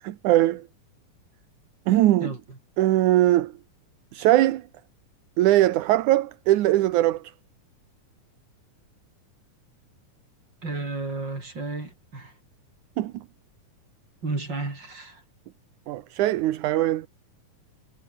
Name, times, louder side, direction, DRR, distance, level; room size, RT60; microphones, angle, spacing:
voice 1, 0.1-0.7 1.9-2.3 2.8-3.5 4.1-4.6 5.4-7.2 13.0-13.2 15.9-17.1, right 15 dB, 75° right, 2.4 m, -21 dB
voice 2, 10.6-12.3 14.2-15.2, right 3 dB, 35° right, 5.9 m, -32 dB
omnidirectional pair, 3.6 m